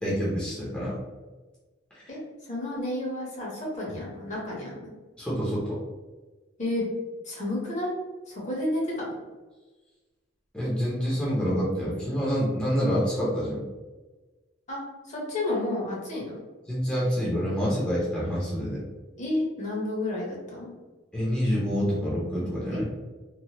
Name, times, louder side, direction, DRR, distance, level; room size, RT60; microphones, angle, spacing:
voice 1, 0.0-1.0 1.9-2.1 5.2-5.8 10.5-13.6 16.7-18.8 21.1-22.9, equal, 5° left, -8 dB, 0.6 m, -27 dB
voice 2, 2.5-4.9 6.6-6.9 7.3-7.9 8.3-9.1 14.7-14.8 15.1-16.3 19.2-20.7 22.7-22.8, left 1 dB, 40° left, -3 dB, 0.9 m, -31 dB
3.1 x 2.3 x 2.8 m, 1.2 s
head